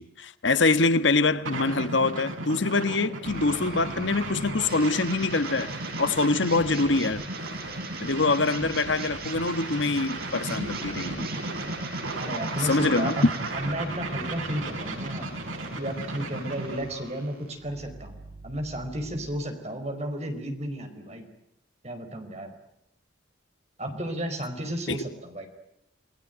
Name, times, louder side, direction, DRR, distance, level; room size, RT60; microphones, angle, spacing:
voice 1, 0.0-5.7 6.0-7.2 8.0-11.3 12.6-13.2 24.9-25.0, left 3 dB, 70° left, 1.3 m, -24 dB
sound 1, 1.4-16.9, right 2 dB, 90° right, 5.7 m, -35 dB
sound 2, 3.2-19.3, right 3 dB, 50° right, 7.5 m, -41 dB
voice 2, 12.2-15.3 15.8-18.2 18.4-21.3 21.8-22.5 23.8-25.5, right 1 dB, 35° right, 4.8 m, -33 dB
29.0 x 19.5 x 9.3 m
head